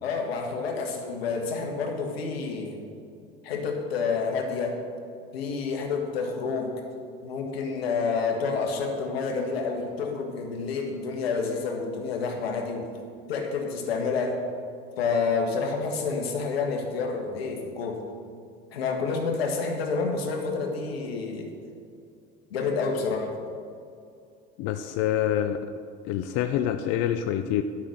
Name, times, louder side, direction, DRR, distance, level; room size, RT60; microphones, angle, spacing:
voice 1, 0.0-2.8 3.4-4.7 5.3-6.7 7.2-12.9 13.3-14.4 15.0-18.0 18.7-21.5 22.5-23.3, left 4 dB, 90° left, 3 dB, 1.5 m, -29 dB
voice 2, 24.6-25.7 26.0-27.6, left 11 dB, 55° left, 8 dB, 0.6 m, -26 dB
11.5 x 6.0 x 6.4 m, 2.4 s
hypercardioid pair, 80°, 30 cm